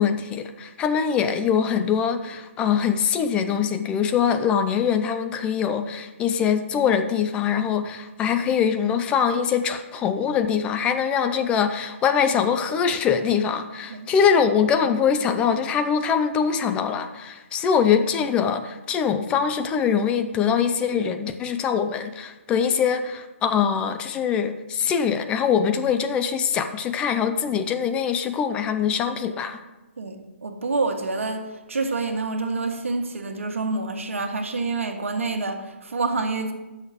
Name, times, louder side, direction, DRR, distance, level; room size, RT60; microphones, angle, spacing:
voice 1, 0.0-29.6, left 7 dB, 15° left, 0.4 m, -23 dB
voice 2, 30.0-36.5, right 3 dB, 75° right, 1.4 m, -27 dB
9.1 x 6.4 x 5.1 m
hypercardioid pair, 145°, 7 cm